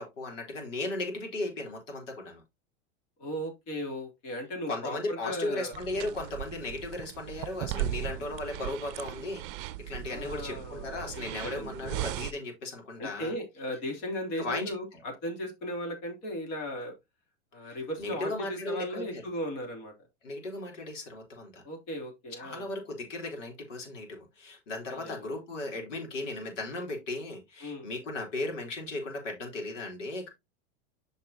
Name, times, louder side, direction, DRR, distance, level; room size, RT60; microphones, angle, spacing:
voice 1, 0.0-2.4 4.7-13.3 14.4-14.7 17.7-19.2 20.2-21.6 22.4-30.3, left 2 dB, 90° left, 3.8 m, -36 dB
voice 2, 3.2-6.2 8.0-8.3 10.0-12.0 13.0-16.9 17.5-19.9 21.6-22.7 24.9-25.4 27.6-27.9, equal, 45° left, 3.2 m, -37 dB
sound 1, 5.7-12.3, right 14 dB, 50° right, 0.6 m, -37 dB
8.6 x 5.6 x 2.8 m
supercardioid pair, 135°, 36 cm